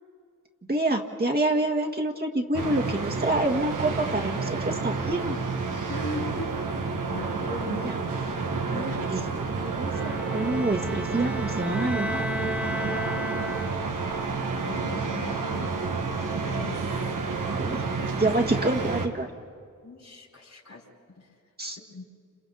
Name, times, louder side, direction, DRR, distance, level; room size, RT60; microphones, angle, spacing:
voice 1, 0.7-5.4 7.7-8.0 8.7-12.2 17.5-17.8 18.1-19.3 21.6-21.8, right 2 dB, 30° right, 2 dB, 1.8 m, -27 dB
sound 1, 2.5-19.1, right 4 dB, 80° right, 1.7 m, -30 dB
voice 2, 5.9-6.7 7.0-7.9 8.7-9.0 14.6-15.9 16.4-16.8 18.2-18.3 19.8-20.8 21.8-22.0, left 2 dB, 60° left, 0 dB, 4.6 m, -38 dB
Bowed string instrument, 9.9-14.1, left 1 dB, 5° right, 0.8 m, -35 dB
30.0 x 27.5 x 4.1 m, 2.2 s
wide cardioid pair, 75°, 32 cm